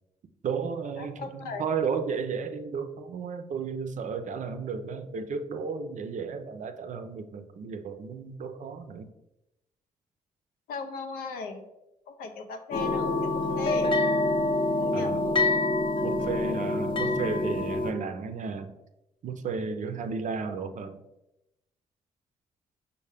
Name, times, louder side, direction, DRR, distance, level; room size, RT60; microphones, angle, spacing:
voice 1, 0.4-9.1 14.9-15.4 16.0-18.8 19.2-21.0, right 5 dB, 55° right, 8 dB, 0.5 m, -33 dB
voice 2, 1.0-1.6 10.7-11.7 12.1-13.9 14.8-15.3, left 4 dB, 80° left, 6 dB, 0.5 m, -38 dB
sound 1, 12.7-17.9, left 2 dB, 35° left, 0.7 m, -26 dB
5.3 x 2.2 x 3.3 m, 0.91 s
supercardioid pair, 50°, 15 cm